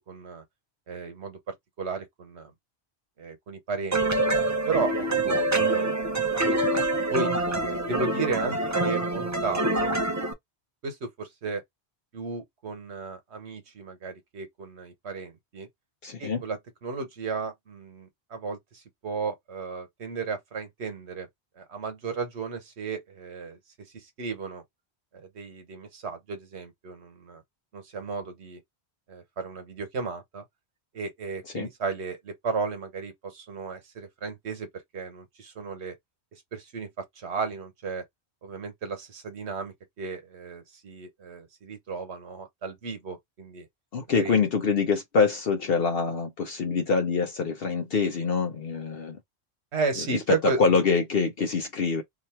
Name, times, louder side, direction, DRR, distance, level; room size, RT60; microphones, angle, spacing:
voice 1, 0.1-0.4 0.9-2.5 3.2-4.3 4.7-6.3 7.1-7.3 7.6-9.9 10.8-11.6 12.1-15.7 16.2-21.3 21.6-24.6 25.1-27.4 27.7-28.6 29.1-30.4 30.9-34.7 34.9-36.0 36.3-36.9 37.2-38.0 38.4-43.7 44.2-44.4 49.7-50.8, right 4 dB, 80° right, 1.3 m, -34 dB
sound 1, 3.9-10.3, right 2 dB, 25° right, 0.4 m, -25 dB
voice 2, 16.0-16.4 31.5-31.7 43.9-49.2 50.1-52.0, left 5 dB, 65° left, 0.9 m, -25 dB
2.9 x 2.5 x 4.3 m
omnidirectional pair, 1.1 m